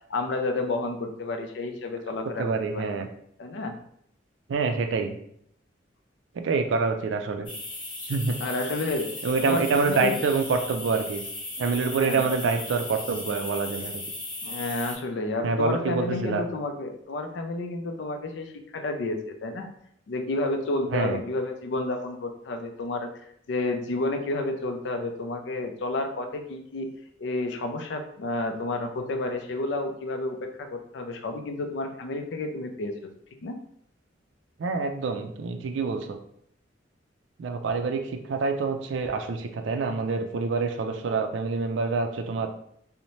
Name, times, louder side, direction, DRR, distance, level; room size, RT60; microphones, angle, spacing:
voice 1, 0.1-3.0 3.4-3.8 8.4-9.1 9.4-10.2 12.0-12.2 14.4-19.7 20.1-23.1 23.5-26.9 27.2-33.0 33.4-33.6, left 2 dB, 70° left, 5 dB, 0.4 m, -30 dB
voice 2, 2.4-3.1 4.5-5.2 6.4-7.5 8.0-8.4 9.2-11.2 11.6-14.0 15.4-16.4 20.9-21.2 34.6-36.2 37.4-42.5, right 4 dB, 80° right, 6 dB, 0.4 m, -26 dB
sound 1, 7.5-15.0, left 2 dB, 30° left, 0.9 m, -37 dB
2.7 x 2.1 x 3.0 m, 0.69 s
head